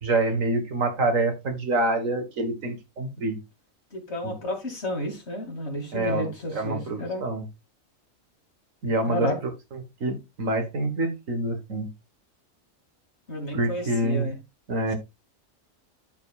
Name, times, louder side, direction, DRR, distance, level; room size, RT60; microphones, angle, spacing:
voice 1, 0.0-3.4 4.2-4.3 5.9-7.5 8.8-11.9 13.5-14.3 14.7-14.9, right 2 dB, 75° right, 2.0 m, -27 dB
voice 2, 3.9-7.2 9.1-9.4 13.3-14.4, left 1 dB, 55° left, 3.0 m, -31 dB
13.0 x 5.3 x 2.5 m
omnidirectional pair, 1.4 m